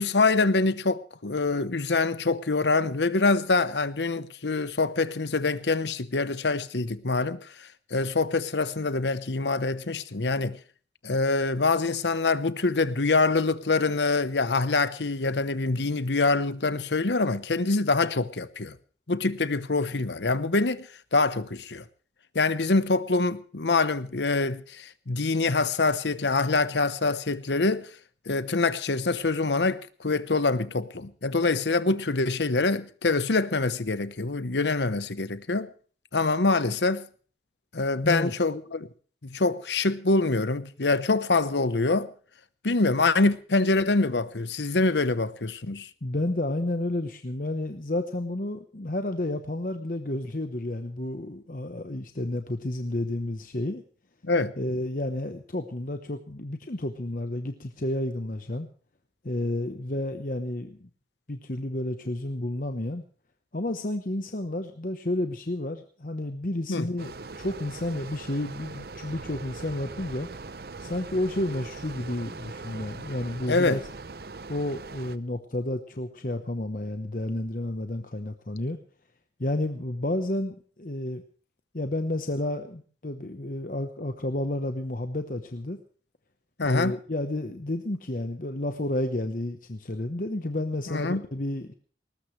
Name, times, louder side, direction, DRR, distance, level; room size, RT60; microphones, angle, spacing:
voice 1, 0.0-7.4 7.9-10.6 11.0-18.8 19.1-21.8 22.3-27.9 28.3-35.7 36.1-37.1 37.7-38.9 39.2-42.1 42.6-45.9 54.2-54.5 66.7-66.9 73.5-73.8 86.6-87.0 90.9-91.2, left 3 dB, 85° left, 1.0 m, -25 dB
voice 2, 46.0-53.8 54.6-58.7 59.2-60.9 61.3-63.0 63.5-70.3 70.8-73.8 74.5-78.8 79.4-81.2 81.7-85.8 86.6-91.7, left 1 dB, 50° left, 1.1 m, -31 dB
sound 1, 67.0-75.2, right 3 dB, 60° right, 0.7 m, -41 dB
19.5 x 19.5 x 3.3 m
head